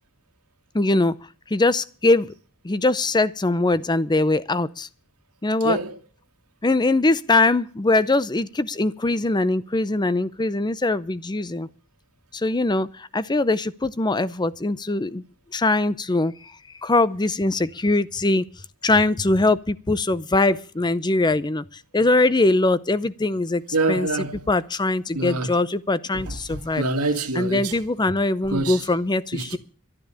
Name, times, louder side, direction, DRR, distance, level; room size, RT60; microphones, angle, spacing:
voice 1, 0.7-1.1 1.5-2.3 2.6-4.9 5.4-5.8 6.6-11.7 12.3-15.2 15.5-16.3 16.8-18.4 18.8-21.6 21.9-23.6 23.9-24.1 24.5-26.8 27.3-29.6, left 2 dB, 20° left, 0.6 m, -22 dB
voice 2, 5.6-6.0 23.7-24.5 25.1-25.5 26.1-27.8 28.5-28.8 29.3-29.6, right 2 dB, 85° right, 2.0 m, -26 dB
12.5 x 10.5 x 7.0 m
head